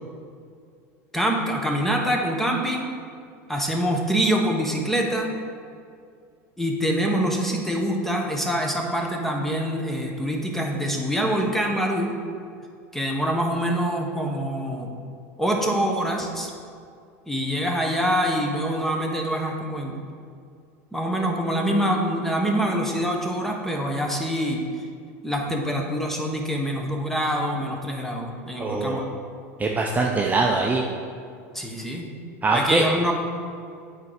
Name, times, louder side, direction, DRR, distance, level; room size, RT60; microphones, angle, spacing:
voice 1, 1.1-2.9 3.5-5.3 6.6-12.2 12.9-14.9 15.4-16.5 17.3-20.0 20.9-24.6 25.2-29.1 31.5-32.1 32.5-33.1, equal, 5° left, 1 dB, 1.1 m, -25 dB
voice 2, 28.6-29.0 29.6-30.8 32.4-32.8, right 3 dB, 20° right, 0 dB, 0.6 m, -22 dB
8.2 x 4.4 x 4.9 m, 2.3 s
hypercardioid pair, 100°, 8 cm